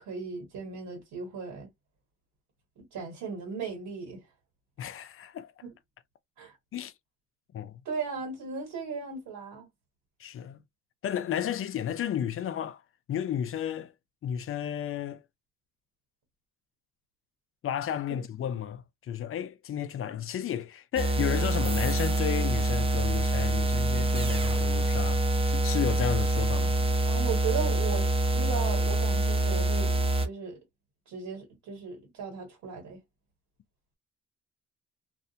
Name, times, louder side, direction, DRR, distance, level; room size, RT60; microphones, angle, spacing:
voice 1, 0.0-1.7 2.8-4.2 6.4-6.6 7.8-9.7 18.1-18.2 27.1-30.6 31.1-33.0, right 6 dB, 85° right, 1.4 m, -36 dB
voice 2, 4.8-5.5 6.7-6.9 7.5-7.8 10.2-10.6 11.0-12.8 13.1-13.9 14.2-15.2 17.6-26.8, left 9 dB, 45° left, 0.4 m, -33 dB
sound 1, 21.0-30.3, right 2 dB, 20° right, 0.7 m, -26 dB
2.5 x 2.1 x 2.7 m
cardioid pair, 90°, 30 cm